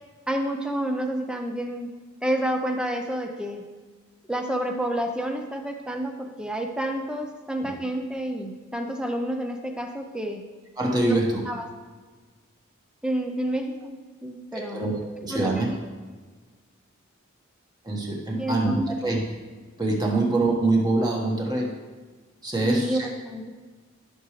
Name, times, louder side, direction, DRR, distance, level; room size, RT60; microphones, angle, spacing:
voice 1, 0.3-1.9 2.2-3.6 4.3-10.4 11.1-11.2 11.5-11.6 13.0-14.8 15.3-15.7 18.4-18.8 22.6-23.5, right 1 dB, 5° right, 4 dB, 0.7 m, -29 dB
voice 2, 10.8-11.4 14.5-15.7 17.8-19.2 19.8-21.7 22.4-23.1, right 2 dB, 20° right, -2 dB, 1.5 m, -24 dB
13.5 x 6.3 x 3.3 m, 1.4 s
head